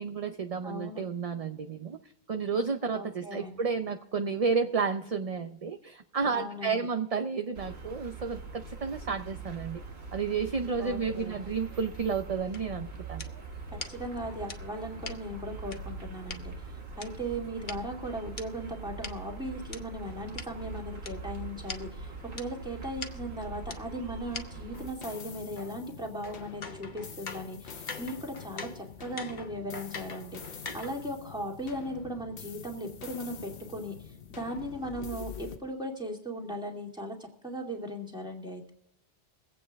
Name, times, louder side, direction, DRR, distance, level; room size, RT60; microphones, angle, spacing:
voice 1, 0.0-2.0 2.3-9.8 10.1-13.2, right 5 dB, 40° right, 6 dB, 0.6 m, -31 dB
voice 2, 0.6-1.0 2.9-3.6 6.3-6.8 10.8-11.4 13.9-37.2 37.4-38.7, equal, 5° right, 0 dB, 2.3 m, -38 dB
sound 1, 7.5-24.9, right 4 dB, 75° right, 2.0 m, -43 dB
sound 2, 12.5-16.4 17.0-19.8 20.4-20.5 21.0-21.1 21.4-21.5 21.7-21.8 22.4-22.5 23.0-23.1 23.7-23.8 24.3-24.4 24.7-31.1, left 4 dB, 50° left, 1.1 m, -44 dB
sound 3, 24.7-35.6, left 7 dB, 85° left, 1.3 m, -46 dB
23.5 x 8.5 x 3.5 m, 0.80 s
omnidirectional pair, 1.1 m